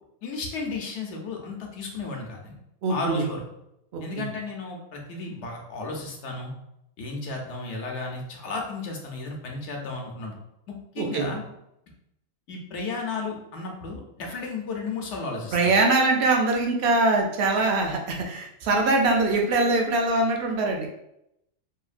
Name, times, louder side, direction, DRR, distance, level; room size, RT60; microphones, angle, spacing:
voice 1, 0.2-2.5 2.9-3.4 4.0-6.5 7.0-10.3 10.7-11.4 12.5-15.7, left 3 dB, 70° left, 1 dB, 0.9 m, -34 dB
voice 2, 2.8-3.2 3.9-4.3 11.0-11.3 15.5-20.9, right 2 dB, 65° right, 2 dB, 0.7 m, -23 dB
2.8 x 2.6 x 2.4 m, 0.81 s
omnidirectional pair, 1.3 m